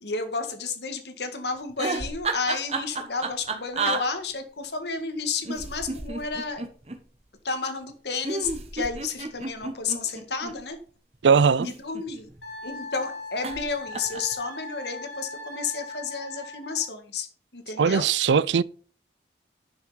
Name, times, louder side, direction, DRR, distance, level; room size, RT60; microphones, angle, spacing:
voice 1, 0.0-6.7 7.4-10.8 11.6-12.3 12.6-17.3 17.5-18.1, left 4 dB, 70° left, 1.8 m, -31 dB
sound 1, 1.7-4.0 5.4-7.0 8.2-10.6 11.4-12.4 13.4-13.7 13.9-14.3, right 3 dB, 35° right, 1.4 m, -31 dB
voice 2, 11.2-11.7 17.8-18.6, right 6 dB, 85° right, 0.5 m, -19 dB
Wind instrument woodwind instrument, 12.4-16.9, left 2 dB, 90° left, 3.2 m, -39 dB
11.0 x 6.5 x 5.0 m
head